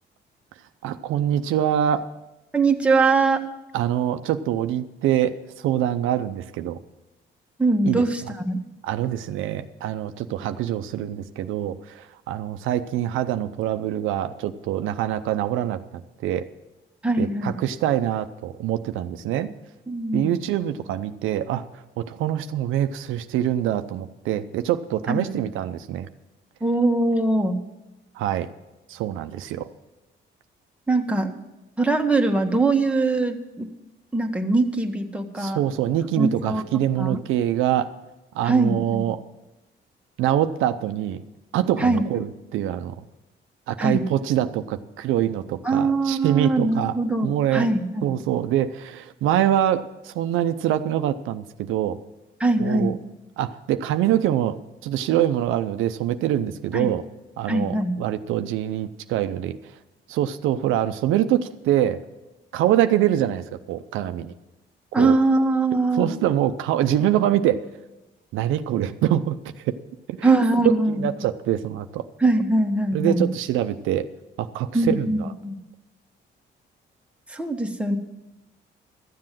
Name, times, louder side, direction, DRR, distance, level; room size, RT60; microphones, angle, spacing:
voice 1, 0.8-2.1 3.7-6.8 7.9-8.3 8.8-16.4 17.2-19.5 20.1-26.1 28.2-28.5 28.9-29.7 35.4-37.9 38.3-39.2 40.2-41.2 41.5-43.0 43.7-46.9 47.2-47.7 48.0-52.0 52.6-53.0 53.4-57.0 57.4-59.6 60.1-62.0 62.5-64.3 64.9-65.2 65.9-67.7 68.3-69.4 69.6-69.8 70.1-70.3 70.9-72.1 72.9-74.1 74.4-75.3, right 11 dB, 90° right, 9 dB, 0.6 m, -24 dB
voice 2, 2.5-3.4 7.6-8.6 17.0-17.6 19.9-20.3 25.1-25.3 26.6-27.6 30.9-31.3 31.8-33.7 34.1-35.6 36.2-36.6 37.0-37.2 38.4-39.1 41.8-42.0 43.8-44.0 45.6-48.1 52.4-52.9 56.7-56.9 57.5-58.0 64.9-66.1 70.2-71.1 72.2-73.3 74.7-75.6 77.3-78.0, right 2 dB, 5° right, 3 dB, 1.2 m, -22 dB
13.0 x 7.7 x 7.4 m, 1.0 s
cardioid pair, 90°, 20 cm